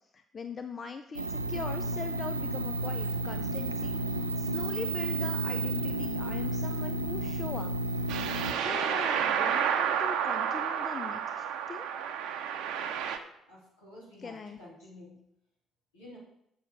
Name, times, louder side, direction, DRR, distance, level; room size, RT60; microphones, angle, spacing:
voice 1, 0.1-8.2 8.6-11.9 14.2-14.6, left 5 dB, 40° left, 8 dB, 0.6 m, -41 dB
sound 1, 1.1-8.5, right 1 dB, 85° right, 0.3 m, -32 dB
sound 2, 8.1-13.2, right 8 dB, 65° right, 0.7 m, -30 dB
voice 2, 13.5-15.1 15.9-16.2, left 1 dB, 80° left, -6 dB, 3.3 m, -50 dB
7.1 x 7.0 x 5.3 m, 0.76 s
figure-of-eight pair, 45°, 0 cm